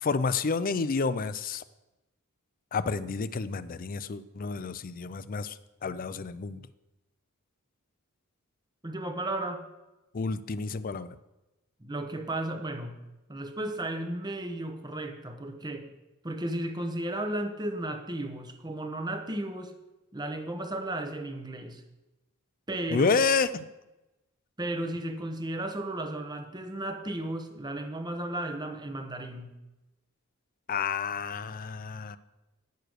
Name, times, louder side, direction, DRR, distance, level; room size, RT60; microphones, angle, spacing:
voice 1, 0.0-1.6 2.7-5.6 5.8-6.6 10.1-11.2 22.9-23.7 30.7-32.2, left 4 dB, 40° left, 14 dB, 0.5 m, -29 dB
voice 2, 8.8-9.7 11.8-13.0 13.3-15.9 16.2-19.7 20.1-21.8 22.7-23.2 24.6-29.5, right 1 dB, 20° right, 5 dB, 1.0 m, -34 dB
10.5 x 6.8 x 6.4 m, 1.0 s
head